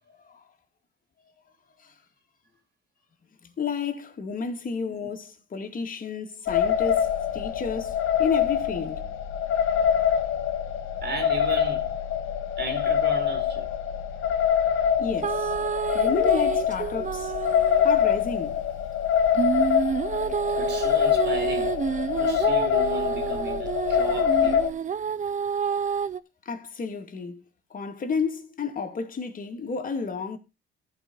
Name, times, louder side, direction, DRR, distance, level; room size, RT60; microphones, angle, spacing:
voice 1, 3.6-9.0 15.0-15.5 15.9-17.3 17.8-18.6 26.5-27.4 27.7-30.4, left 5 dB, 45° left, 2.2 m, -31 dB
sound 1, 6.5-24.7, left 8 dB, 80° left, 1.5 m, -25 dB
voice 2, 11.0-11.9 12.6-13.7 20.5-21.8 22.2-24.6, right 2 dB, 60° right, 3.3 m, -36 dB
sound 2, 15.2-17.8 19.3-26.2, right 7 dB, 40° right, 0.6 m, -29 dB
14.5 x 4.9 x 3.9 m
cardioid pair, 90°, 20 cm